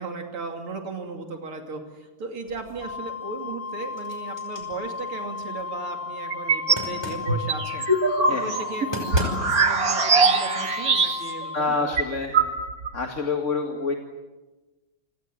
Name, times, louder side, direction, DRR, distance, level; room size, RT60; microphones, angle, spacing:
voice 1, 0.0-7.9 8.3-12.0 12.3-12.5, right 4 dB, 85° right, 4 dB, 3.6 m, -36 dB
sound 1, 2.5-3.1 3.5-5.7 6.8-7.4 8.6-8.7 8.9-9.7, equal, 10° left, 5.2 m, -35 dB
Wind instrument woodwind instrument, 2.8-11.8, left 6 dB, 55° left, 2.5 m, -34 dB
sound 2, 6.3-6.9 7.3-11.4 11.7-11.8 12.0-12.9, right 4 dB, 45° right, 2.1 m, -22 dB
voice 2, 11.5-12.4 12.9-13.9, left 4 dB, 35° left, 3 dB, 2.3 m, -27 dB
29.5 x 25.5 x 7.7 m, 1.2 s
omnidirectional pair, 2.3 m